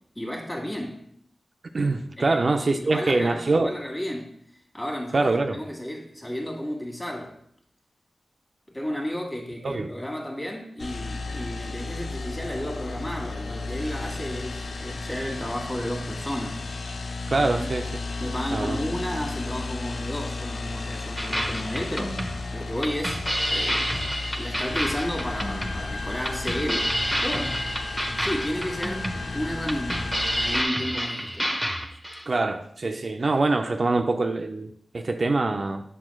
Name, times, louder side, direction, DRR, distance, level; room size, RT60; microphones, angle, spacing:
voice 1, 0.1-1.1 2.2-4.3 4.7-7.3 8.7-16.6 17.4-17.7 18.2-23.8 24.3-27.6 28.2-31.5, equal, 20° left, 1.5 m, -33 dB
voice 2, 1.7-3.7 5.1-5.6 9.6-9.9 17.3-17.9 18.5-18.8 32.3-35.8, right 3 dB, 55° right, 0.4 m, -24 dB
sound 1, 10.8-30.6, left 3 dB, 75° left, 0.4 m, -33 dB
sound 2, 21.2-32.2, equal, ahead, 0.7 m, -29 dB
7.6 x 5.9 x 2.3 m
wide cardioid pair, 75°, 0 cm